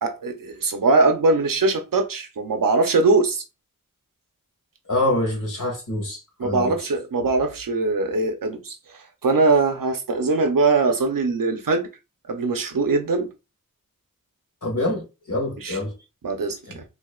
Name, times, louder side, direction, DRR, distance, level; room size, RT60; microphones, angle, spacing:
voice 1, 0.0-3.4 6.4-11.9 12.3-13.3 15.6-15.8 16.2-16.8, right 3 dB, 80° right, 0.7 m, -21 dB
voice 2, 4.9-6.7 14.6-15.9 16.7-16.8, left 1 dB, 70° left, 1.8 m, -26 dB
4.4 x 2.8 x 2.4 m
wide cardioid pair, 70°, 33 cm